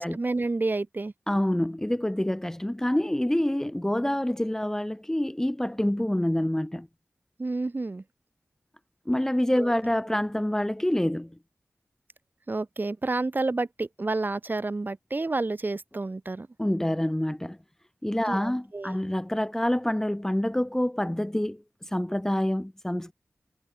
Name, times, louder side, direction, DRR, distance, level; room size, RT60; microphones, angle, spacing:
voice 1, 0.0-1.1 7.4-8.0 9.6-9.7 12.5-16.5 18.3-19.0, right 3 dB, 40° right, 2.9 m, -30 dB
voice 2, 1.3-6.9 9.1-11.3 16.6-17.6 18.0-23.1, left 1 dB, 10° left, 1.1 m, -27 dB
wide cardioid pair, 75°, 5 cm